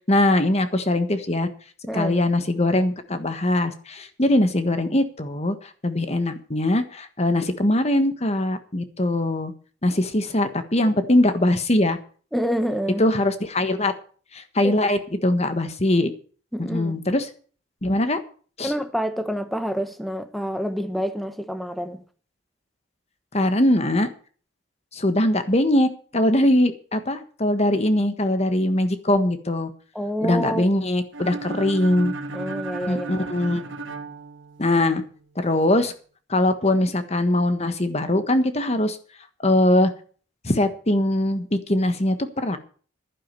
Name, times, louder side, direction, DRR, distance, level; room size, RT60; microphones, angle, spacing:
voice 1, 0.1-1.5 1.9-9.5 9.8-12.0 13.0-13.9 14.3-16.1 16.6-17.3 17.8-18.2 18.6-18.7 23.3-24.1 24.9-29.7 30.2-32.1 32.9-33.6 34.6-35.0 35.3-35.9 36.3-39.0 39.4-39.9 40.4-42.6, left 1 dB, 35° left, 1.4 m, -21 dB
voice 2, 12.3-13.0 14.6-14.7 16.5-17.0 18.6-22.0 29.9-30.7 31.2-31.4 32.3-33.3, equal, ahead, 1.1 m, -27 dB
sound 1, 31.1-35.0, right 3 dB, 75° right, 1.6 m, -34 dB
11.5 x 9.8 x 6.8 m
head